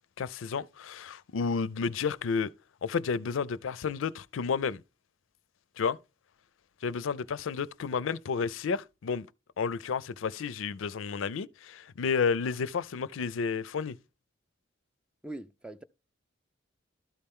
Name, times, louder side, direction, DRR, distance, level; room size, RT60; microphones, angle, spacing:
voice 1, 0.2-2.5 2.8-4.8 5.8-6.0 6.8-9.3 9.6-14.0, left 5 dB, 85° left, 0.4 m, -31 dB
voice 2, 15.2-15.8, right 2 dB, 5° right, 0.3 m, -42 dB
12.5 x 4.3 x 3.6 m
head